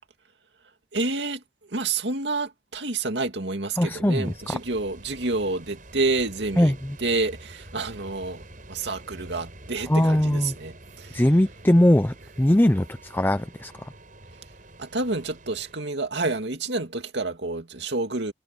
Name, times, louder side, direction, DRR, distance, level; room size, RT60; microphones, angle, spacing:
voice 1, 0.9-11.2 14.8-18.3, right 3 dB, 65° right, 2.5 m, -29 dB
voice 2, 3.8-4.6 6.6-7.0 9.9-10.5 11.1-13.9, left 1 dB, 10° left, 0.6 m, -21 dB
sound 1, 4.2-15.8, right 1 dB, 45° right, 6.3 m, -47 dB
head